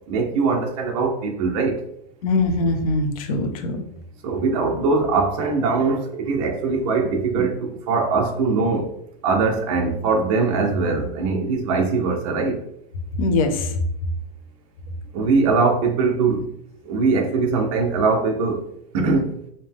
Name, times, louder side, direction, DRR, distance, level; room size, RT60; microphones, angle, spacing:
voice 1, 0.1-1.8 4.2-8.9 9.2-12.6 15.1-16.4 16.8-18.6 18.9-19.4, right 4 dB, 55° right, 2 dB, 0.9 m, -21 dB
voice 2, 2.2-3.8 13.2-13.7, left 2 dB, 55° left, 4 dB, 0.8 m, -22 dB
5.2 x 2.2 x 3.5 m, 0.75 s
supercardioid pair, 170°, 21 cm